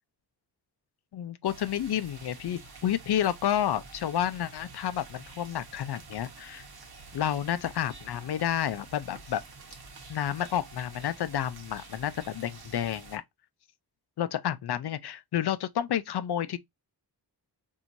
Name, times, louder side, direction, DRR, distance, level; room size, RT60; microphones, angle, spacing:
voice 1, 1.1-6.6 7.1-9.4 10.1-13.2 14.2-16.6, left 10 dB, 70° left, 0.5 m, -30 dB
sound 1, 1.4-13.2, right 4 dB, 60° right, 1.1 m, -48 dB
4.5 x 2.7 x 2.5 m
wide cardioid pair, 115°, 41 cm